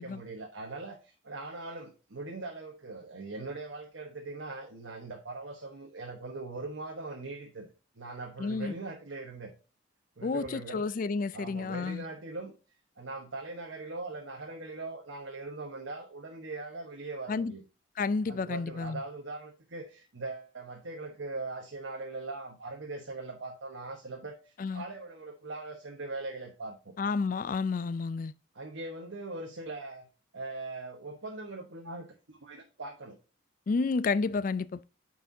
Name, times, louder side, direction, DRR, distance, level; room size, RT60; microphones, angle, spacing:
voice 1, 0.0-9.5 10.2-10.9 11.3-12.5 13.0-17.6 18.3-26.9 28.5-30.1 30.3-33.2, right 3 dB, 75° right, 1.1 m, -41 dB
voice 2, 8.4-8.8 10.2-12.1 17.3-17.5 18.0-19.0 24.6-24.8 27.0-28.3 33.7-34.8, left 4 dB, 40° left, 0.3 m, -31 dB
9.4 x 4.6 x 2.7 m
head